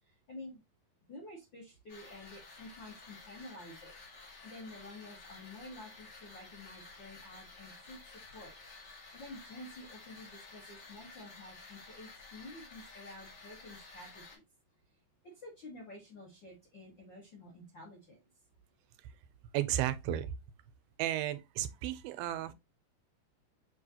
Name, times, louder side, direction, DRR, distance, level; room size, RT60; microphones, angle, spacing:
voice 1, 0.3-0.6 1.1-8.5 9.1-14.4 15.2-18.2, left 1 dB, 90° left, 1.0 m, -50 dB
sound 1, 1.9-14.4, left 3 dB, 50° left, 1.3 m, -53 dB
voice 2, 19.5-20.3 21.0-22.5, right 12 dB, 85° right, 2.4 m, -33 dB
6.7 x 2.7 x 2.7 m
omnidirectional pair, 4.2 m